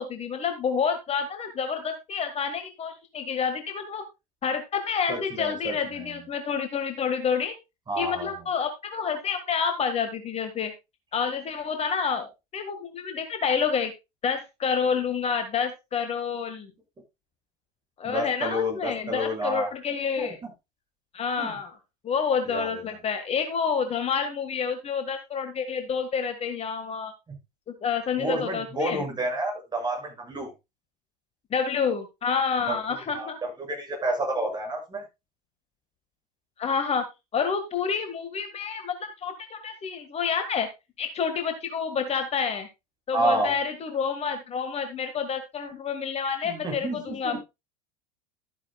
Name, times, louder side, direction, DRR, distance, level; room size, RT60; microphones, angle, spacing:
voice 1, 0.0-4.0 4.4-7.5 8.0-10.7 11.1-13.9 14.2-16.7 18.0-20.4 21.1-21.8 22.0-27.1 27.7-29.0 31.5-33.4 36.6-37.1 37.3-40.7 41.0-42.7 43.1-47.4, left 6 dB, 30° left, 7 dB, 1.8 m, -28 dB
voice 2, 5.1-6.1 7.9-8.3 18.0-19.7 20.1-20.5 21.4-21.6 22.5-22.8 28.2-30.5 32.7-32.8 33.1-35.0 43.1-43.5 46.4-47.4, right 1 dB, 20° right, 1 dB, 6.7 m, -30 dB
13.0 x 9.0 x 2.3 m, 0.24 s
figure-of-eight pair, 80°, 20 cm